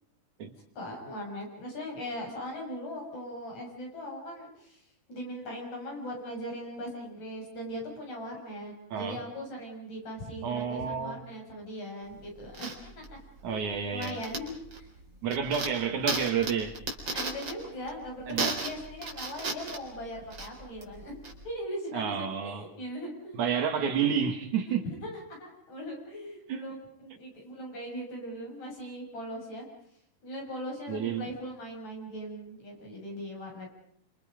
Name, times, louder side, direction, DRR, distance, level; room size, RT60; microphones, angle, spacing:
voice 1, 0.8-4.8 5.1-13.2 13.5-13.6 13.9-14.9 17.1-21.2 21.4-23.4 24.7-26.7 27.0-29.7 30.2-33.7, equal, 60° left, 8.0 m, -39 dB
voice 2, 8.9-9.2 10.4-11.2 13.4-14.2 15.2-16.7 18.3-18.6 21.9-22.6 23.3-24.8 26.5-26.6 30.9-31.3, right 7 dB, 65° right, 3.4 m, -30 dB
sound 1, 12.0-21.4, right 3 dB, 35° right, 4.3 m, -36 dB
27.5 x 27.0 x 5.2 m
omnidirectional pair, 3.7 m